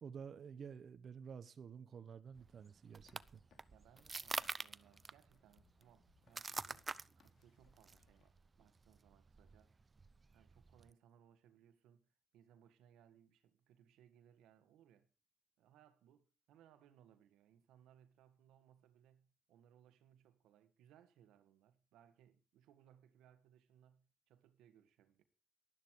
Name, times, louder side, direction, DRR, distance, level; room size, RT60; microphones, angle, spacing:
voice 1, 0.0-3.4, right 7 dB, 55° right, 1.2 m, -51 dB
sound 1, 2.3-10.9, right 4 dB, 30° right, 0.8 m, -48 dB
sound 2, 2.8-8.3, left 6 dB, 70° left, 3.6 m, -75 dB
voice 2, 3.7-9.8 10.3-15.1 15.6-25.2, right 9 dB, 90° right, 1.8 m, -68 dB
13.0 x 11.5 x 4.8 m
cardioid pair, 90°, 0 cm